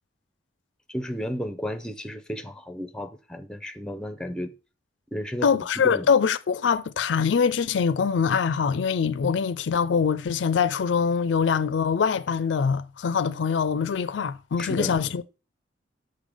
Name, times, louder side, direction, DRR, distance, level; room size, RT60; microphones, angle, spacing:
voice 1, 0.9-4.5 5.1-5.5 5.8-6.1 14.6-15.2, equal, 5° left, 0.5 m, -33 dB
voice 2, 5.4-15.2, left 6 dB, 80° left, 0.4 m, -23 dB
6.7 x 3.7 x 5.0 m
head